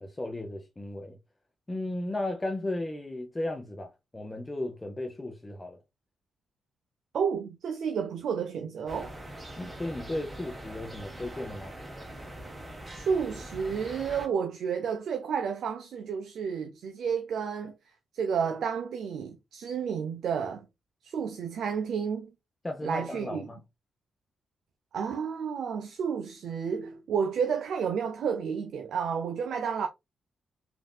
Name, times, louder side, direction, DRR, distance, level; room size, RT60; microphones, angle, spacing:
voice 1, 0.0-1.2 1.7-5.8 9.6-11.7 22.6-23.6, left 1 dB, 20° left, 0.6 m, -35 dB
voice 2, 7.1-9.1 12.9-17.7 18.1-20.7 21.0-22.3 22.8-23.5 24.9-29.9, right 6 dB, 75° right, 0.4 m, -31 dB
sound 1, 8.9-14.3, right 1 dB, 20° right, 1.0 m, -43 dB
3.3 x 2.6 x 2.2 m
supercardioid pair, 55°, 0 cm